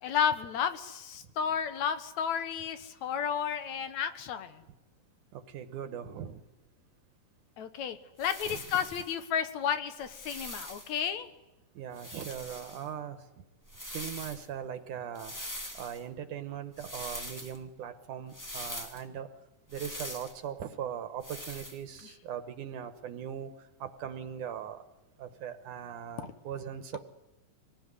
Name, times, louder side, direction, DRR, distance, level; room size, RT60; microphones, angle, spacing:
voice 1, 0.0-4.6 7.6-11.3 22.0-22.1 26.2-26.3, left 8 dB, 65° left, 10 dB, 2.4 m, -32 dB
voice 2, 5.5-6.4 8.5-8.6 11.8-13.2 13.9-15.3 15.8-19.3 19.7-23.5 23.8-24.8 25.2-27.0, right 9 dB, 70° right, 9 dB, 2.5 m, -39 dB
sound 1, 8.2-9.1 10.0-11.0 11.9-12.9 13.6-14.5 15.1-16.0 16.8-17.6 18.3-19.0 19.7-20.4 21.2-21.8, equal, 20° left, 0.4 m, -43 dB
25.0 x 19.0 x 9.8 m, 1.0 s
omnidirectional pair, 3.9 m